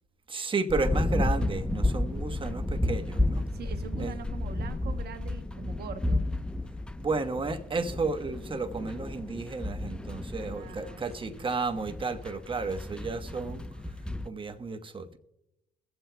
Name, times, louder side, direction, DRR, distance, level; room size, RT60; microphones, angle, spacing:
voice 1, 0.3-3.5 4.0-4.1 7.0-13.6 14.2-15.2, right 3 dB, 30° right, 9 dB, 1.1 m, -32 dB
sound 1, 0.7-14.3, left 1 dB, 5° left, 0.5 m, -32 dB
voice 2, 3.5-6.2 10.2-11.5, right 7 dB, 65° right, 9 dB, 0.9 m, -44 dB
23.0 x 7.7 x 2.2 m, 0.87 s
supercardioid pair, 65°, 18 cm